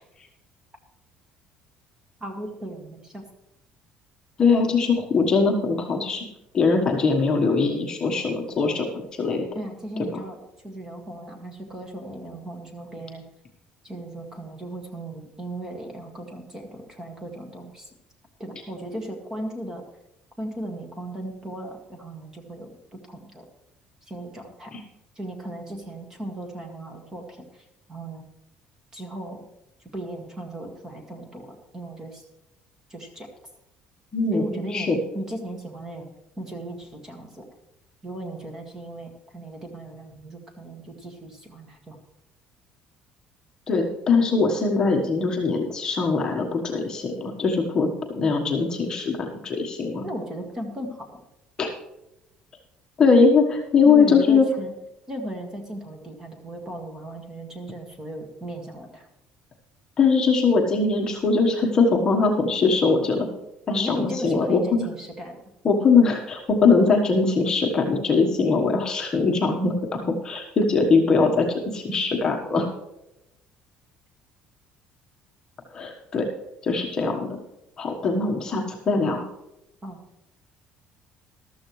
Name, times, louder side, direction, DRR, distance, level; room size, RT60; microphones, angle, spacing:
voice 1, 2.2-3.2 9.5-10.4 10.6-13.2 13.8-17.9 18.4-19.8 20.4-23.4 24.1-24.7 25.2-28.2 28.9-29.4 29.9-32.2 32.9-33.3 34.3-34.9 35.1-36.1 36.4-37.5 38.0-42.0 50.0-51.1 53.9-54.7 55.1-59.1 63.7-65.4 79.8-80.0, right 1 dB, 15° right, 2 dB, 1.9 m, -36 dB
voice 2, 4.4-6.2 6.5-9.4 10.1-10.2 24.7-24.8 34.1-35.0 43.7-50.1 51.6-51.7 53.0-54.4 60.0-63.3 63.7-64.9 65.6-72.7 75.7-76.3 76.6-77.3 77.8-79.2, left 4 dB, 25° left, 1 dB, 1.3 m, -21 dB
14.0 x 13.0 x 3.2 m, 0.89 s
cardioid pair, 170°, 3 cm